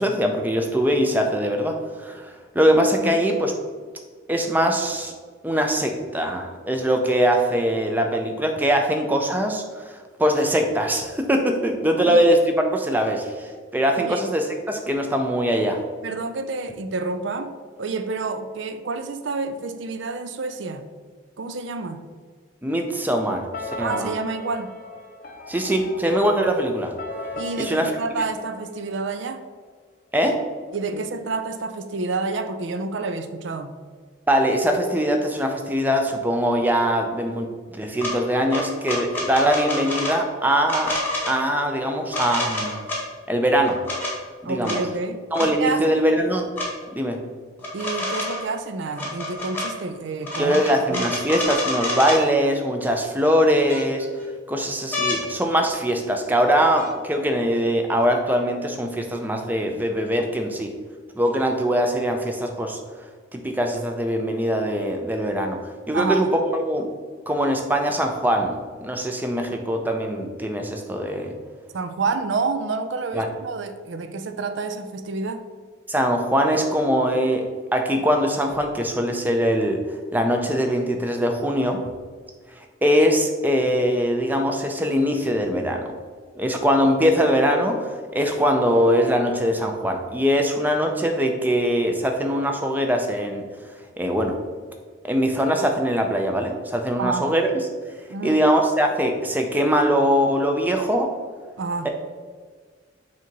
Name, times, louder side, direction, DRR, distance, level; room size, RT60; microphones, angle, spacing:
voice 1, 0.0-3.5 4.3-5.1 5.4-15.8 22.6-24.1 25.5-26.9 27.6-27.9 30.1-30.4 30.9-31.0 34.3-41.0 41.3-42.7 43.3-43.8 44.4-44.8 45.3-46.5 46.9-47.2 50.4-54.1 54.5-60.7 61.1-62.8 63.3-66.9 67.3-71.4 73.1-73.3 75.9-81.9 82.5-85.9 86.4-93.5 94.0-94.4 95.1-97.6 98.2-101.1, equal, 10° right, 3 dB, 0.5 m, -22 dB
voice 2, 12.0-12.3 14.0-14.2 16.0-20.9 21.4-22.0 23.8-24.7 27.3-29.5 30.7-33.7 44.4-46.0 47.7-50.6 50.9-51.1 65.9-66.2 71.7-75.5 97.0-97.3 98.1-98.4 101.6-101.9, right 3 dB, 65° right, 10 dB, 0.4 m, -29 dB
sound 1, 23.5-29.3, left 2 dB, 45° left, 0.6 m, -37 dB
sound 2, 38.0-38.1 38.5-40.1 40.7-41.3 42.1-43.0 43.6-44.1 44.6-44.8 45.3-45.5 46.6-46.7 47.6-48.5 48.9-49.7 50.2-52.2 53.2-53.3 53.7-54.2 54.9-55.2 56.8-56.9, left 2 dB, 10° left, 1.3 m, -27 dB
6.4 x 2.8 x 5.2 m, 1.5 s
head